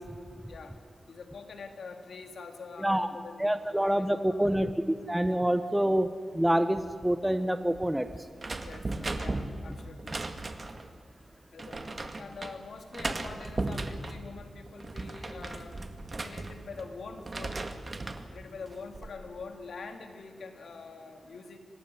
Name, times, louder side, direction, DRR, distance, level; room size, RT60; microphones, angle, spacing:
voice 1, 0.5-0.8 1.1-4.7 8.6-10.3 11.5-15.8 16.2-17.7 18.3-21.6, left 4 dB, 80° left, 5 dB, 3.3 m, -45 dB
voice 2, 3.4-4.7 5.1-6.1 6.3-8.1, right 1 dB, 5° right, 10 dB, 1.1 m, -26 dB
sound 1, 8.4-10.9 11.6-12.5 12.9-14.2 14.7-16.9 17.2-18.3 18.7-19.1, right 2 dB, 35° right, 2.1 m, -36 dB
26.0 x 19.5 x 9.8 m, 2.1 s
wide cardioid pair, 100°, 0 cm